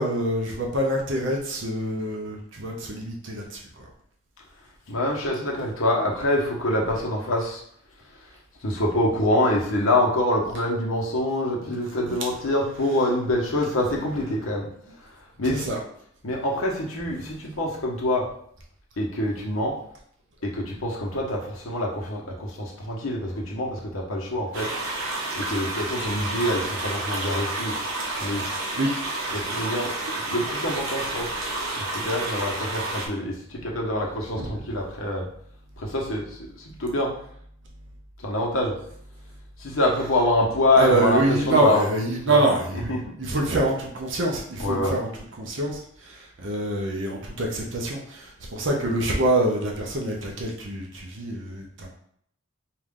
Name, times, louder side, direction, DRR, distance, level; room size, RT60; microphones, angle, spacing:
voice 1, 0.0-3.9 13.6-13.7 15.5-15.8 28.8-28.9 34.4-34.5 40.8-45.1 45.4-51.9, right 1 dB, 60° right, -1 dB, 0.7 m, -25 dB
voice 2, 4.9-7.6 8.2-8.3 8.6-14.7 15.0-15.8 16.2-18.3 19.0-19.8 20.4-24.7 25.4-27.7 28.2-28.5 29.3-31.3 31.8-35.3 35.8-37.1 38.2-38.8 39.6-41.9 42.2-42.4 42.7-43.1 44.6-45.0, left 1 dB, 80° left, -2 dB, 1.0 m, -25 dB
sound 1, 24.5-33.1, right 2 dB, 80° right, 1.0 m, -30 dB
4.7 x 2.4 x 3.6 m, 0.66 s
head